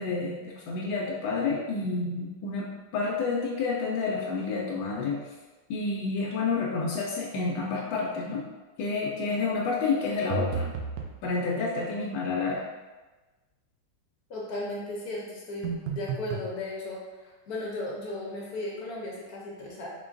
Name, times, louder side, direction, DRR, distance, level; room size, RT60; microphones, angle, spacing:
voice 1, 0.0-5.2 5.7-8.5 8.8-10.7 11.2-12.7, left 4 dB, 90° left, -3 dB, 1.3 m, -29 dB
sound 1, 10.3-11.2 15.6-16.5, right 5 dB, 80° right, 1.2 m, -32 dB
voice 2, 14.3-19.9, left 2 dB, 65° left, -3 dB, 1.1 m, -36 dB
3.7 x 3.7 x 2.5 m, 1.2 s
omnidirectional pair, 2.0 m